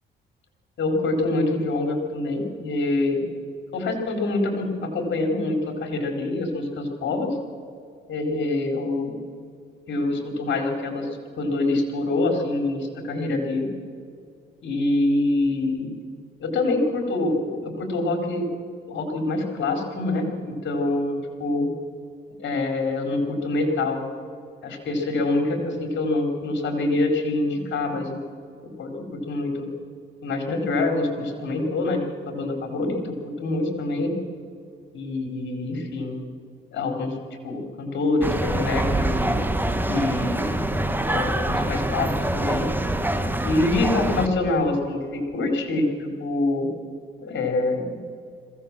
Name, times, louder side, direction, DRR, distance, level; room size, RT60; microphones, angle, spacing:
voice 1, 0.8-3.2 3.7-7.4 8.1-9.2 9.9-11.1 11.4-13.7 14.6-15.9 16.4-18.5 18.9-21.7 22.4-24.0 24.6-28.2 28.8-29.7 30.2-32.0 32.3-34.1 34.9-36.2 36.7-37.2 37.4-39.4 39.9-40.7 41.0-42.7 43.4-46.7 47.2-48.0, left 2 dB, 65° left, 4 dB, 4.4 m, -25 dB
sound 1, 38.2-44.3, right 1 dB, 10° right, 1.5 m, -25 dB
21.5 x 16.5 x 7.6 m, 2.4 s
cardioid pair, 90°, 20 cm